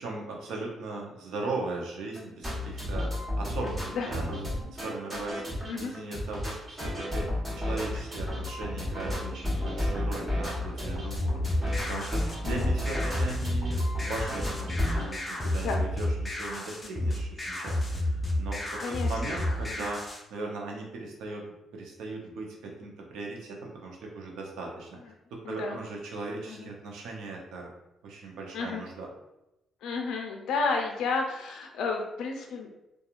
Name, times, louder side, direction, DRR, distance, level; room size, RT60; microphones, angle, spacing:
voice 1, 0.0-4.4 4.7-5.4 5.8-7.3 7.6-25.0 25.5-27.7 28.0-29.1, right 3 dB, 85° right, 0 dB, 0.6 m, -38 dB
sound 1, 2.1-15.0, left 1 dB, 20° right, 1.1 m, -32 dB
sound 2, 11.2-20.2, left 1 dB, 20° left, 0.5 m, -31 dB
voice 2, 18.8-19.4 19.8-19.9 25.4-25.8 26.5-26.7 28.5-28.8 29.8-32.7, left 4 dB, 80° left, 2 dB, 0.3 m, -32 dB
2.9 x 2.3 x 2.3 m, 0.92 s
cardioid pair, 90°, 0 cm